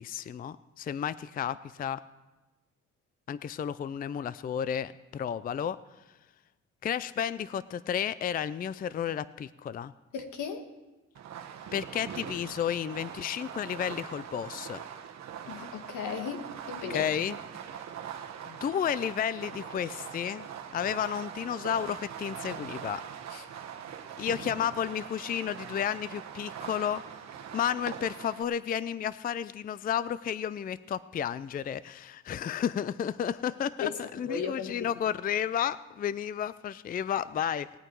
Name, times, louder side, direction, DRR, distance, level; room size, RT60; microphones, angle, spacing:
voice 1, 0.0-2.0 3.3-5.8 6.8-9.9 11.7-14.8 16.9-17.4 18.5-23.0 24.2-27.0 27.5-37.8, left 9 dB, 30° left, 17 dB, 0.4 m, -32 dB
voice 2, 10.1-10.6 15.5-17.0 23.3-23.4 33.8-34.9, left 6 dB, 80° left, 6 dB, 1.6 m, -36 dB
Fireworks, 11.1-28.4, right 8 dB, 65° right, 1.2 m, -42 dB
19.0 x 8.9 x 4.6 m, 1.1 s
cardioid pair, 90°, 30 cm